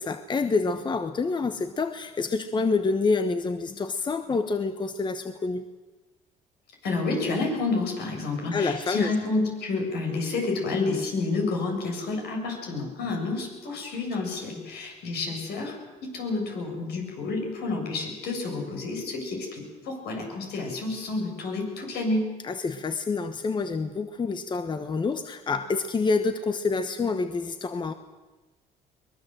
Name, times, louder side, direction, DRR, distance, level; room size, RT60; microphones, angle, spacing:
voice 1, 0.0-5.7 8.5-9.1 22.4-27.9, left 4 dB, 25° left, 9 dB, 1.1 m, -27 dB
voice 2, 6.8-15.7 16.0-22.3, left 3 dB, 70° left, 2 dB, 7.4 m, -29 dB
23.5 x 20.5 x 7.8 m, 1.2 s
cardioid pair, 110°, 17 cm